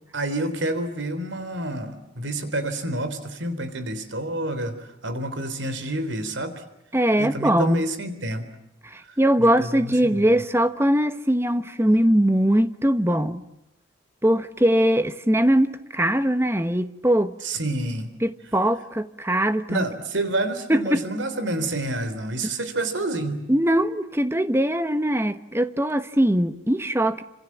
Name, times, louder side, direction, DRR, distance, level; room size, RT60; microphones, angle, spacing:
voice 1, 0.1-6.6 7.2-8.4 9.4-10.4 17.4-18.1 19.7-23.4, right 1 dB, 70° right, 3.6 m, -28 dB
voice 2, 6.9-7.9 8.8-13.5 14.2-17.4 18.2-19.8 20.7-21.1 23.5-27.2, right 1 dB, 10° right, 1.2 m, -21 dB
29.0 x 26.5 x 7.3 m
head